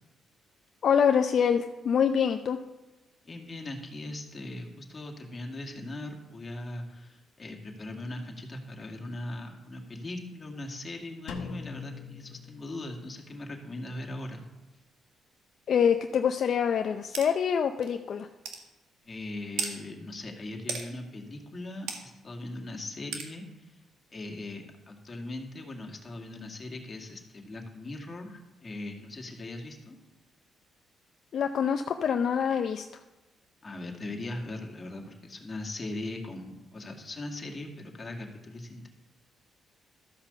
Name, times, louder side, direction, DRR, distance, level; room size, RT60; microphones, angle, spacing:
voice 1, 0.8-2.6 15.7-18.3 31.3-32.9, left 7 dB, 60° left, 5 dB, 0.5 m, -25 dB
voice 2, 3.2-14.5 19.0-23.7 24.1-30.0 33.6-38.9, left 2 dB, 30° left, 1 dB, 2.1 m, -40 dB
Drum, 11.3-13.2, left 6 dB, 85° left, 0.9 m, -42 dB
sound 1, 17.1-17.3 17.8-17.9 18.4-18.6 19.6-19.7 20.7-20.9 21.9-22.0 23.1-23.3, right 6 dB, 85° right, 1.5 m, -33 dB
13.0 x 5.8 x 6.9 m, 1.1 s
cardioid pair, 90°, 0 cm